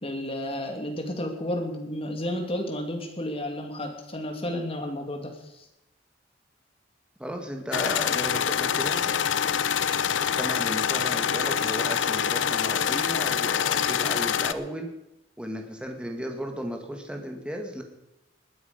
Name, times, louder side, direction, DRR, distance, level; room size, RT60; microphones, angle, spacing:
voice 1, 0.0-5.7, left 1 dB, 30° left, 3 dB, 2.4 m, -32 dB
voice 2, 7.2-9.2 10.2-14.9 15.4-17.8, equal, 5° right, 3 dB, 1.8 m, -35 dB
sound 1, 7.7-14.5, left 8 dB, 75° left, 0.6 m, -25 dB
20.0 x 9.8 x 5.2 m, 0.89 s
head